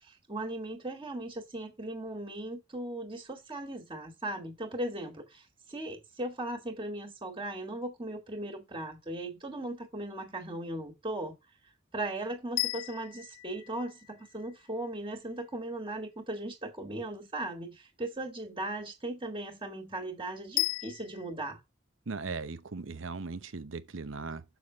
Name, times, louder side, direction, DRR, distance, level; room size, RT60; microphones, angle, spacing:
voice 1, 0.0-11.3 11.9-21.6, right 1 dB, 25° right, 1.7 m, -38 dB
sound 1, 12.6-14.7 20.6-21.3, left 19 dB, 70° left, 0.4 m, -35 dB
voice 2, 22.1-24.4, right 4 dB, 70° right, 0.8 m, -38 dB
7.0 x 5.9 x 3.9 m
head